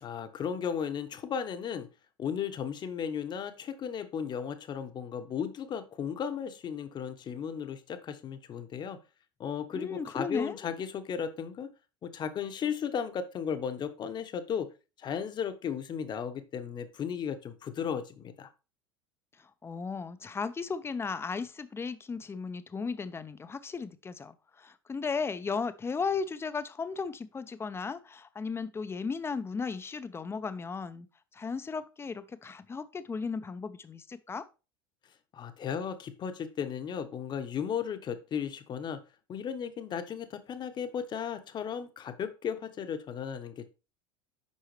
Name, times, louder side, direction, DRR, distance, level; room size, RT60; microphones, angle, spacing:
voice 1, 0.0-1.9 2.2-9.0 9.4-11.7 12.0-14.7 15.0-18.5 35.3-39.0 39.3-43.7, left 7 dB, 35° left, 1.1 m, -35 dB
voice 2, 9.7-10.6 19.4-31.1 31.3-34.4, left 5 dB, 20° left, 0.7 m, -35 dB
8.4 x 5.5 x 3.3 m
hypercardioid pair, 75°, 13 cm